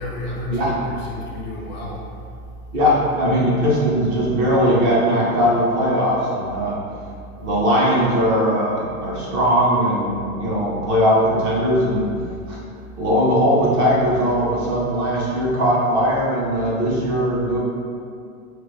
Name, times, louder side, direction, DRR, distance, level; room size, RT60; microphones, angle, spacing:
voice 1, 0.0-2.0, left 1 dB, 35° left, -2 dB, 0.4 m, -30 dB
voice 2, 2.7-6.8 7.4-12.1 12.5-12.6 13.0-17.6, equal, 25° right, -5 dB, 0.5 m, -19 dB
2.9 x 2.5 x 3.1 m, 2.4 s
supercardioid pair, 145°, 44 cm